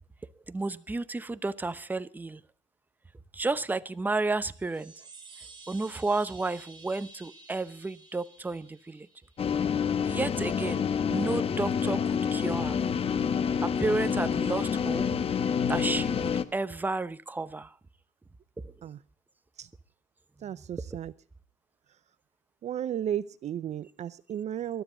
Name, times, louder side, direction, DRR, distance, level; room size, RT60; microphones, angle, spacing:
voice 1, 0.5-2.4 3.3-4.9 5.7-9.1 10.0-10.8 11.1-12.8 13.6-15.0 15.7-17.7, right 3 dB, 10° right, 15 dB, 0.8 m, -32 dB
sound 1, 4.5-9.5, right 3 dB, 25° right, 7.0 m, -52 dB
sound 2, 9.4-16.4, left 7 dB, 35° left, 1.2 m, -28 dB
voice 2, 20.4-21.1 22.6-24.8, right 10 dB, 45° right, 18 dB, 0.6 m, -34 dB
21.5 x 12.5 x 3.9 m, 0.39 s
cardioid pair, 105°, 17 cm